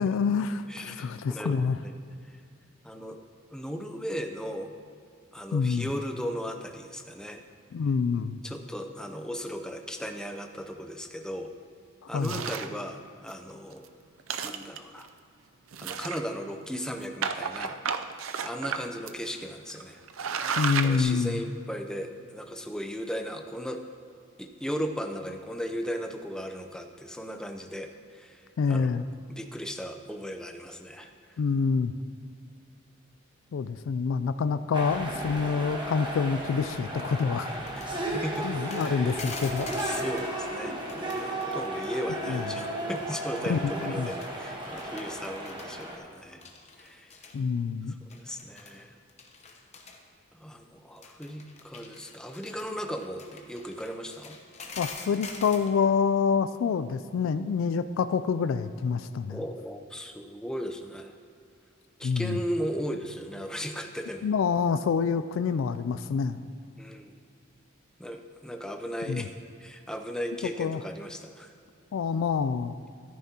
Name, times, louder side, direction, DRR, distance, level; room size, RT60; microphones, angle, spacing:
voice 1, 0.0-1.8 5.5-5.9 7.7-8.4 12.1-12.4 20.6-21.4 28.6-29.0 31.4-31.9 33.5-37.5 37.8-38.0 38.4-39.9 42.3-42.6 43.5-44.1 47.3-47.9 54.8-59.4 62.0-62.4 64.2-66.4 69.1-69.2 70.6-70.8 71.9-72.7, left 5 dB, 80° left, 12 dB, 0.3 m, -27 dB
voice 2, 0.7-1.9 2.3-2.4 2.8-3.2 3.5-4.7 5.3-7.4 8.4-11.5 12.1-13.9 14.4-15.1 15.8-17.8 18.4-20.0 20.8-23.8 24.4-31.4 38.1-38.6 38.8-39.1 39.8-46.4 46.8-47.2 47.9-49.0 50.3-54.4 59.3-61.2 62.0-64.3 66.8-67.1 68.0-69.3 69.6-71.5, equal, 5° left, 5 dB, 0.5 m, -36 dB
sound 1, 12.2-12.8 13.3-13.4 13.7-13.9 14.2-15.0 15.7-16.5 17.2-18.8 19.1-19.2 19.7-19.8 20.1-21.0, right 6 dB, 85° right, 0.5 m, -32 dB
sound 2, 34.7-46.0, right 1 dB, 25° right, 1.2 m, -34 dB
sound 3, 37.5-40.3 40.8-42.5 42.8-43.0 43.4-44.3 44.7-45.8 46.2-47.4 48.1-48.8 49.1-50.0 51.0-55.8, left 4 dB, 35° left, 0.9 m, -45 dB
14.0 x 9.4 x 2.8 m, 2.4 s
head